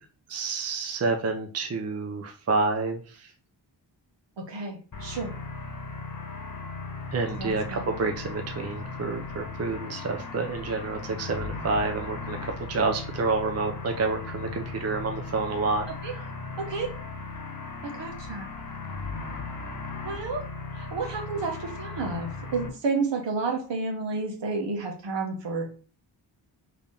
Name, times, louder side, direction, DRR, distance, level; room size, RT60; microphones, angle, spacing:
voice 1, 0.3-3.3 7.1-16.3, right 3 dB, 35° right, 4 dB, 0.7 m, -29 dB
voice 2, 4.5-5.3 7.4-8.0 16.0-16.1 16.7-16.9 17.8-18.5 20.0-20.4 20.7-25.7, right 4 dB, 65° right, 2 dB, 1.1 m, -31 dB
sound 1, 4.9-22.7, left 3 dB, 45° left, 1.0 m, -37 dB
3.5 x 2.9 x 3.4 m, 0.39 s
cardioid pair, 55°, 46 cm